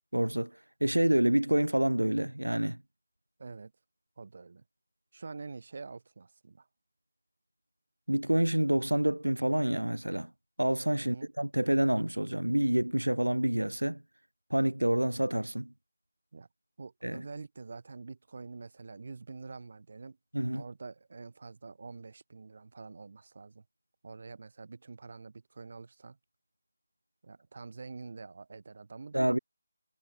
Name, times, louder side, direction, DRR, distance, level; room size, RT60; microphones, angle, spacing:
voice 1, 0.1-0.5 0.8-2.8 8.1-10.3 10.6-14.0 14.5-15.7 17.0-17.2 20.3-20.6 29.1-29.4, right 1 dB, 90° right, 3.9 m, -27 dB
voice 2, 3.4-3.7 4.2-4.6 5.1-6.7 11.0-11.3 16.3-16.5 16.8-20.2 20.5-23.6 24.0-26.2 27.2-29.3, right 4 dB, 50° right, 6.9 m, -46 dB
figure-of-eight pair, 160°, 0 cm